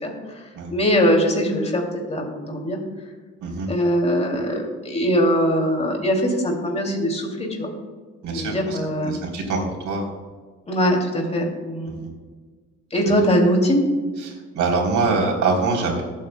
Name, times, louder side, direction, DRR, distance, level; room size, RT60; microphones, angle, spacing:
voice 1, 0.0-2.8 3.7-7.7 8.3-9.1 10.7-11.9 12.9-13.8, equal, 20° left, 0 dB, 2.5 m, -22 dB
voice 2, 8.2-8.8 9.0-9.6 9.8-10.1 11.9-12.1 14.2-16.0, right 4 dB, 75° right, 0 dB, 3.4 m, -24 dB
21.5 x 8.7 x 2.2 m, 1.5 s
cardioid pair, 90°, 30 cm